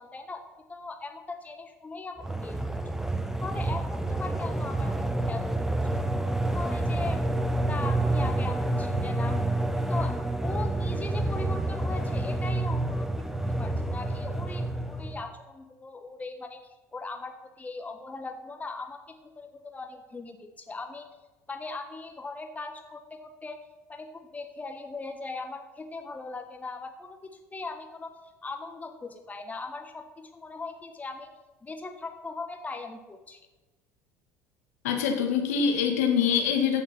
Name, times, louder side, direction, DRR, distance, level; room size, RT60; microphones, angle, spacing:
voice 1, 0.0-2.8 3.4-6.0 6.5-9.4 9.9-10.2 10.4-16.6 16.9-21.1 21.5-23.6 23.9-28.1 28.4-31.3 31.6-33.4, left 3 dB, 20° left, 6 dB, 1.4 m, -39 dB
sound 1, 2.2-15.3, right 1 dB, 5° right, 1.0 m, -28 dB
voice 2, 34.8-36.8, left 7 dB, 75° left, 2 dB, 2.2 m, -24 dB
14.5 x 6.5 x 6.0 m, 1.2 s
hypercardioid pair, 65°, 8 cm